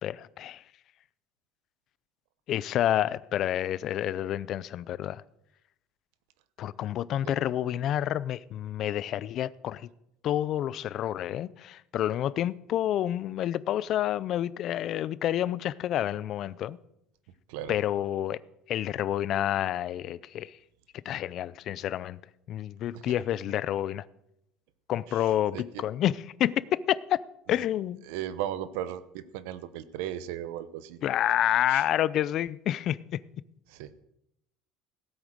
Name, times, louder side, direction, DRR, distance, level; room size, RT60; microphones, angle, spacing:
voice 1, 0.0-0.6 2.5-5.2 6.6-9.9 10.2-16.8 17.7-18.4 18.7-20.6 21.1-22.2 22.5-24.0 24.9-27.2 27.5-28.0 31.0-33.2, left 12 dB, 40° left, 0.4 m, -29 dB
voice 2, 25.2-25.8 27.5-27.6 28.1-31.0 31.7-31.8 33.7-33.9, right 11 dB, 85° right, 0.9 m, -37 dB
16.0 x 8.8 x 6.5 m
cardioid pair, 165°, 0 cm